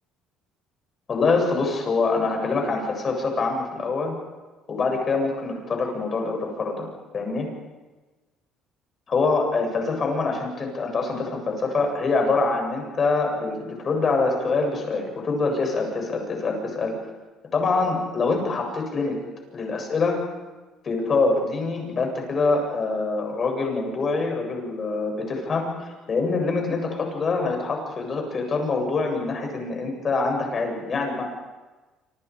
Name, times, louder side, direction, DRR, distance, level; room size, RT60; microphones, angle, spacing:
voice 1, 1.1-4.1 4.7-6.9 7.1-7.5 9.1-17.0 17.5-19.2 19.5-20.2 20.8-31.2, left 3 dB, 35° left, 2 dB, 7.8 m, -25 dB
27.0 x 27.0 x 5.1 m, 1.2 s
cardioid pair, 115°, 0 cm